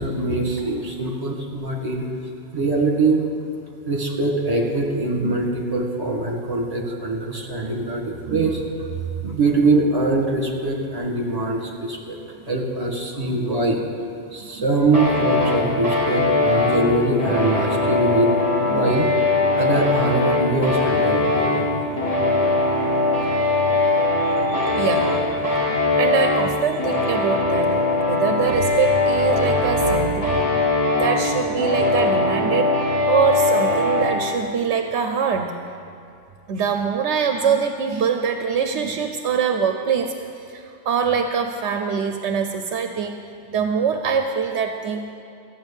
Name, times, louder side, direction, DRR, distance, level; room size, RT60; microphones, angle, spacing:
voice 1, 0.0-2.1 2.5-3.2 3.9-8.6 9.2-12.2 12.5-13.8 14.3-18.3 18.7-19.1 19.6-21.7, right 2 dB, 35° right, 0 dB, 1.9 m, -22 dB
sound 1, 14.9-34.1, left 2 dB, 30° left, 3.3 m, -21 dB
voice 2, 24.2-25.4 26.0-27.8 28.1-30.3 30.9-32.7 33.1-35.6 36.5-40.1 40.5-43.2 43.5-45.1, right 6 dB, 75° right, 6 dB, 1.0 m, -23 dB
14.0 x 9.2 x 7.1 m, 2.4 s
omnidirectional pair, 1.2 m